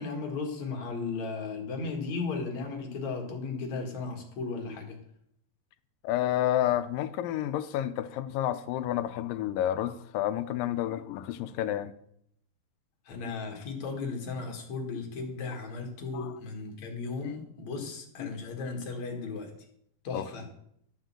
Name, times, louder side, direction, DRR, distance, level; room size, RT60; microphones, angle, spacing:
voice 1, 0.0-5.0 13.1-19.5 20.0-20.5, left 4 dB, 55° left, 3.0 m, -35 dB
voice 2, 6.0-11.9 16.1-16.3 17.2-17.3 18.2-18.3 20.1-20.3, left 12 dB, 80° left, 2.2 m, -30 dB
12.5 x 6.4 x 7.5 m
omnidirectional pair, 4.2 m